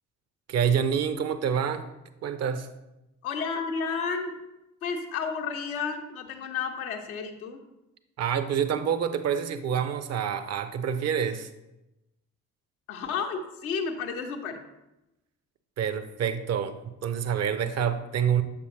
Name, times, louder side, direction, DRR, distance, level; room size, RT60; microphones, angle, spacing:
voice 1, 0.5-1.8 2.2-2.7 8.2-11.5 15.8-18.4, right 8 dB, 40° right, 11 dB, 0.5 m, -27 dB
voice 2, 3.2-4.3 4.8-7.6 12.9-14.6, left 5 dB, 75° left, 4 dB, 0.7 m, -32 dB
6.7 x 5.1 x 3.2 m, 0.93 s
figure-of-eight pair, 40°, 43 cm